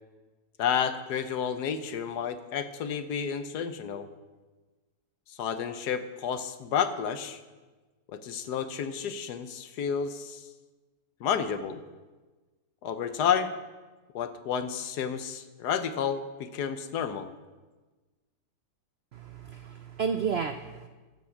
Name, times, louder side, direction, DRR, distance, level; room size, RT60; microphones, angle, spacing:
voice 1, 0.6-4.1 5.3-7.4 8.1-10.4 11.2-11.8 12.8-13.5 14.1-17.3, left 7 dB, 75° left, 10 dB, 1.4 m, -31 dB
voice 2, 19.1-20.9, right 6 dB, 85° right, 9 dB, 0.5 m, -32 dB
15.0 x 6.1 x 7.2 m, 1.3 s
omnidirectional pair, 1.8 m